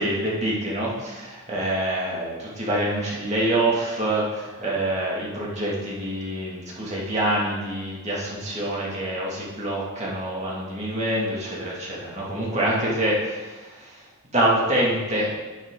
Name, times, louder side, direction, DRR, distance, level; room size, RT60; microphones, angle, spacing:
voice 1, 0.0-14.0 14.3-15.3, right 1 dB, 30° right, -5 dB, 2.6 m, -26 dB
9.7 x 9.5 x 4.0 m, 1.2 s
head